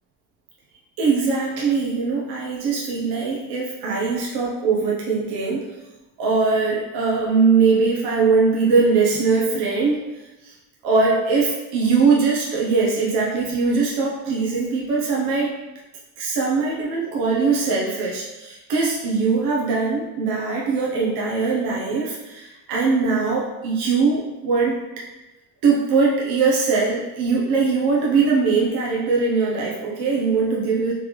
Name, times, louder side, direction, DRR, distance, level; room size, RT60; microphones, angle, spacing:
voice 1, 1.0-5.7 6.2-10.0 10.4-10.5 10.8-15.5 16.2-24.9 25.6-30.9, right 4 dB, 70° right, -4 dB, 0.8 m, -21 dB
3.8 x 3.4 x 3.1 m, 1.1 s
cardioid pair, 150°, 39 cm